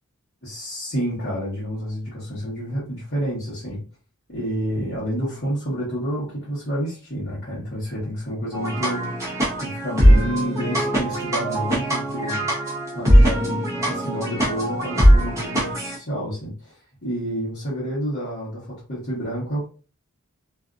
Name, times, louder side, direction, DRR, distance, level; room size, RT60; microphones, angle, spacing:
voice 1, 0.4-3.8 4.3-12.5 12.9-19.7, equal, 50° left, -10 dB, 1.1 m, -29 dB
sound 1, 8.5-16.0, equal, 15° right, 0.8 m, -20 dB
2.6 x 2.4 x 2.4 m, 0.36 s
head